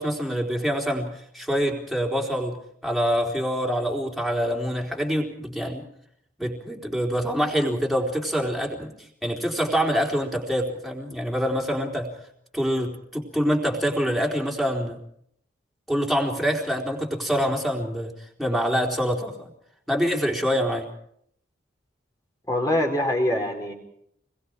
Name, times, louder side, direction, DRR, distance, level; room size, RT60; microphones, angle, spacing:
voice 1, 0.0-2.6 2.8-5.8 6.4-8.9 9.2-12.1 12.5-15.0 15.9-19.5 19.9-20.9, equal, ahead, 0 dB, 4.0 m, -25 dB
voice 2, 22.5-23.7, left 1 dB, 20° left, 1 dB, 4.4 m, -24 dB
29.0 x 22.0 x 4.9 m, 0.68 s
head